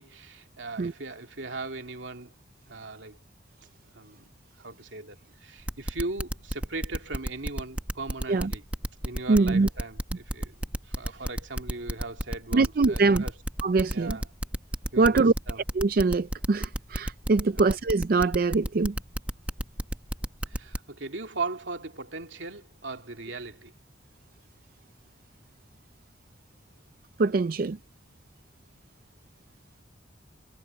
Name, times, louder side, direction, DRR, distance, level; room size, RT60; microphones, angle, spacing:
voice 1, 0.0-2.3 2.7-3.2 3.9-4.2 4.6-8.6 9.0-13.3 13.9-14.3 14.9-15.6 17.6-17.7 20.5-23.7, right 3 dB, 80° right, 2.7 m, -38 dB
sound 1, 5.7-20.8, equal, 5° right, 1.2 m, -31 dB
voice 2, 9.3-9.7 12.5-13.2 13.6-14.2 15.0-15.3 15.7-19.0 27.2-27.8, right 3 dB, 50° right, 0.4 m, -23 dB
head